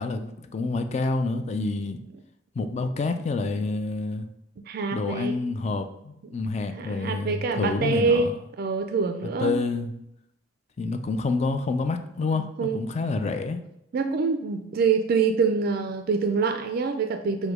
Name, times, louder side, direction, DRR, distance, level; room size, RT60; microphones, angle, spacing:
voice 1, 0.0-2.0 2.6-4.3 4.9-8.3 9.4-9.9 10.8-13.6, left 3 dB, 35° left, 0.4 m, -28 dB
voice 2, 4.7-5.4 6.7-8.3 8.6-9.6 12.3-12.8 13.9-17.5, right 4 dB, 50° right, 0.3 m, -25 dB
4.8 x 2.1 x 4.8 m
head